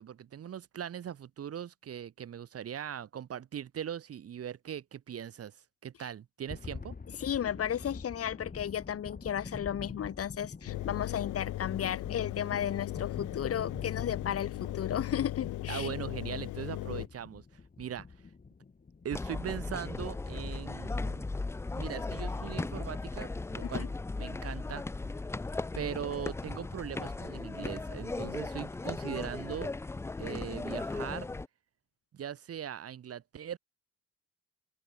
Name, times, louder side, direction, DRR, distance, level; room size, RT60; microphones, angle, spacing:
voice 1, 0.0-5.6 5.8-6.9 15.7-18.1 19.0-21.3 21.7-23.9 24.2-24.8 25.7-29.7 30.2-31.3 32.1-33.6, right 9 dB, 50° right, 1.3 m, -40 dB
sound 1, 6.5-22.3, left 4 dB, 30° left, 4.1 m, -47 dB
voice 2, 7.2-15.9 23.7-23.9, left 9 dB, 50° left, 1.0 m, -34 dB
Engine, 10.7-17.1, left 16 dB, 80° left, 1.0 m, -37 dB
sound 2, 19.1-31.5, left 3 dB, 10° left, 0.3 m, -37 dB
open air
cardioid pair, 90°, 30 cm